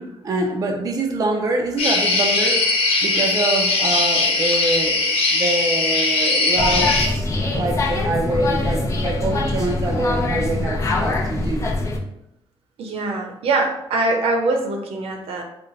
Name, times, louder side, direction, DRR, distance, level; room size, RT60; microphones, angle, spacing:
voice 1, 0.0-11.7, right 2 dB, 35° right, 2 dB, 0.4 m, -25 dB
sound 1, 1.8-7.1, left 3 dB, 80° left, 0.8 m, -20 dB
sound 2, 6.6-12.0, left 2 dB, 30° left, 0.6 m, -23 dB
voice 2, 12.8-15.4, right 2 dB, 75° right, 3 dB, 0.7 m, -23 dB
4.0 x 2.1 x 3.9 m, 0.83 s
cardioid pair, 120°, 10 cm